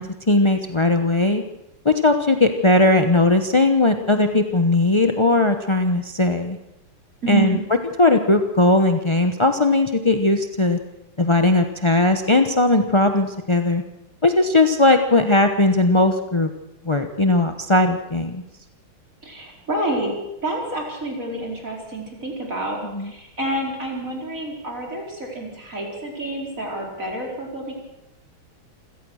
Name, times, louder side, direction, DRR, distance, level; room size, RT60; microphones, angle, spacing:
voice 1, 0.0-1.4 1.8-6.6 7.3-7.6 8.0-10.8 11.2-13.8 14.2-16.5 16.8-18.4 22.9-23.1, left 2 dB, 35° left, 6 dB, 0.4 m, -18 dB
voice 2, 7.2-7.6 19.2-20.1 20.4-27.7, right 2 dB, 40° right, 0 dB, 5.1 m, -28 dB
27.5 x 16.5 x 6.4 m, 0.90 s
omnidirectional pair, 2.3 m